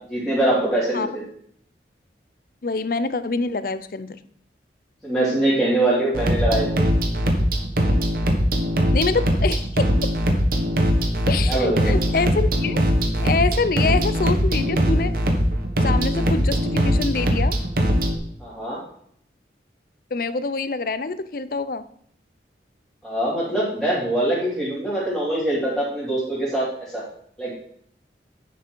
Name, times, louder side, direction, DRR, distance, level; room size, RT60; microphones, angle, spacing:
voice 1, 0.1-1.1 5.0-6.9 11.4-11.9 18.4-18.8 23.0-26.7 26.9-27.0 27.4-27.5, right 1 dB, 5° left, -8 dB, 3.0 m, -23 dB
voice 2, 2.6-4.2 8.9-9.9 11.3-12.8 13.2-15.2 15.8-17.5 20.1-21.8, left 4 dB, 55° left, 14 dB, 0.5 m, -25 dB
sound 1, 6.1-18.2, equal, 50° right, 1.4 m, -21 dB
10.0 x 6.1 x 4.6 m, 0.66 s
head